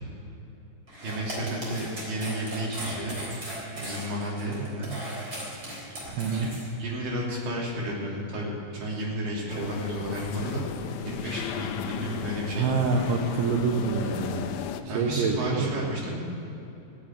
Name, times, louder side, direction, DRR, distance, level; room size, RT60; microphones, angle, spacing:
sound 1, 0.9-6.6, right 1 dB, 25° right, 3.8 m, -38 dB
voice 1, 1.0-3.2 3.7-4.9 6.0-6.5 6.8-10.6 11.0-12.7 14.9-16.2, right 1 dB, 55° right, -4 dB, 4.4 m, -32 dB
voice 2, 6.2-6.5 12.5-14.4 14.8-15.7, right 4 dB, 75° right, 0 dB, 2.7 m, -26 dB
sound 2, 9.5-14.8, left 9 dB, 85° left, 2.1 m, -35 dB
15.5 x 7.3 x 9.1 m, 2.9 s
omnidirectional pair, 5.0 m